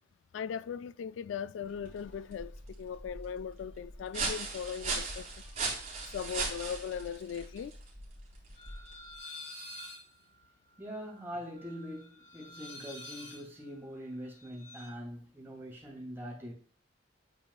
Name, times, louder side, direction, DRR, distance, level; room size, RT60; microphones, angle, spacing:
voice 1, 0.3-5.3 6.1-7.8, left 7 dB, 80° left, 0.3 m, -39 dB
sound 1, 1.7-9.1, right 3 dB, 35° right, 3.8 m, -39 dB
sound 2, 8.6-14.9, left 1 dB, 40° left, 2.7 m, -49 dB
voice 2, 10.8-16.5, equal, 10° right, 2.7 m, -43 dB
9.0 x 7.0 x 2.3 m
head